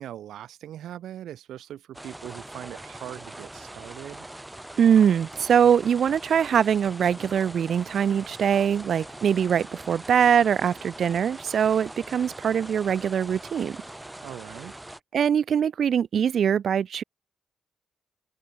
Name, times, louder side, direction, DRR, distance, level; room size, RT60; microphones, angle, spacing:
voice 1, 0.0-4.3 14.2-14.8, right 11 dB, 85° right, 2.7 m, -40 dB
sound 1, 1.9-15.0, right 1 dB, 10° right, 5.0 m, -42 dB
voice 2, 4.8-13.8 15.1-17.0, right 8 dB, 65° right, 2.9 m, -22 dB
open air
cardioid pair, 95°, 0 cm